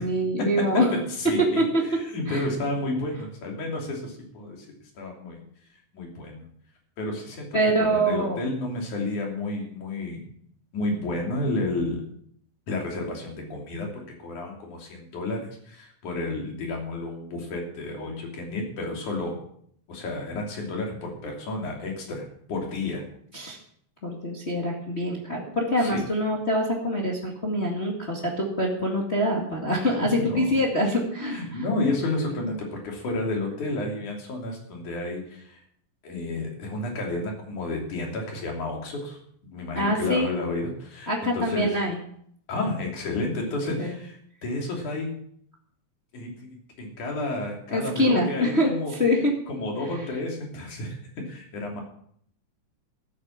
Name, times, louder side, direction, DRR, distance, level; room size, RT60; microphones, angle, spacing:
voice 1, 0.0-0.9 1.4-2.0 2.3-2.4 7.5-8.4 23.3-23.6 24.0-31.6 39.7-40.3 41.1-42.0 43.8-43.9 47.7-48.7 49.0-49.3, equal, 25° left, -1 dB, 1.8 m, -25 dB
voice 2, 1.1-1.6 1.9-4.7 5.0-5.4 5.9-6.5 7.0-10.3 10.7-12.0 12.7-19.4 19.9-23.0 25.8-26.0 30.0-30.6 31.3-35.6 36.0-41.7 42.5-45.1 46.1-48.9 49.5-51.0 51.3-51.8, left 2 dB, 65° left, 0 dB, 4.5 m, -31 dB
13.5 x 8.8 x 7.3 m, 0.66 s
omnidirectional pair, 3.8 m